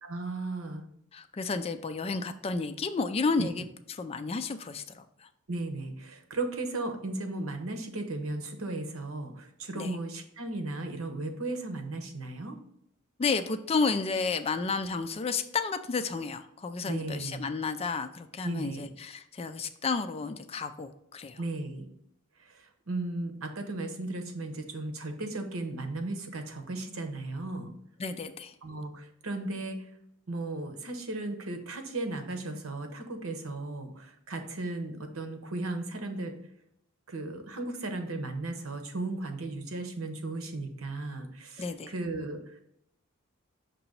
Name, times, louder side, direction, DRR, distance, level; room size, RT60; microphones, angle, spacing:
voice 1, 0.0-0.8 3.4-3.5 5.5-12.6 16.8-17.4 18.4-18.9 21.4-21.9 22.4-27.7 28.6-29.9 30.3-36.3 37.1-42.6, right 2 dB, 75° right, 6 dB, 0.9 m, -36 dB
voice 2, 1.1-3.7 4.0-5.3 9.7-9.9 13.2-21.4 28.0-28.5 41.6-41.9, left 4 dB, 30° left, 10 dB, 0.3 m, -31 dB
6.0 x 2.9 x 5.4 m, 0.76 s
head